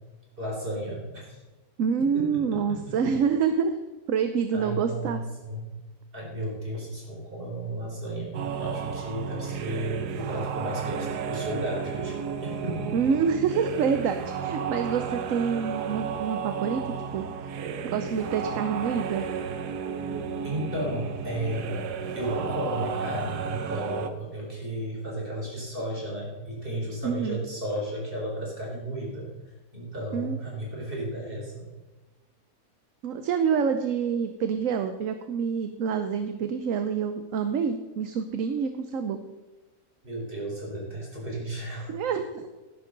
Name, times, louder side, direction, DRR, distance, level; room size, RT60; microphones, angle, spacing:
voice 1, 0.4-1.4 2.1-2.8 4.5-5.8 6.1-12.9 20.4-21.8 22.1-29.3 29.7-31.7 40.0-41.9, right 1 dB, 35° right, -3 dB, 4.6 m, -33 dB
voice 2, 1.8-3.8 4.1-5.2 12.9-16.8 17.1-17.2 17.8-19.3 27.0-27.4 30.1-30.4 33.0-39.2 41.9-42.5, right 6 dB, 60° right, 8 dB, 1.0 m, -27 dB
sound 1, 8.3-24.1, right 7 dB, 85° right, 1.5 m, -33 dB
13.0 x 10.5 x 3.9 m, 1.2 s
omnidirectional pair, 1.7 m